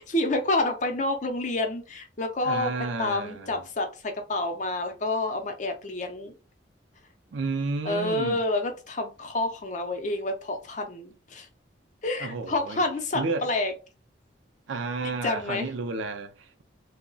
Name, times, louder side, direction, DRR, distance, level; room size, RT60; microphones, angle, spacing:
voice 1, 0.0-2.7 3.0-6.3 7.9-11.5 12.0-13.7 15.2-15.7, left 2 dB, 40° left, 0.5 m, -28 dB
voice 2, 2.4-3.7 7.3-8.4 12.2-12.8 13.1-13.5 14.7-16.6, right 3 dB, 80° right, 0.5 m, -32 dB
2.3 x 2.0 x 3.8 m
head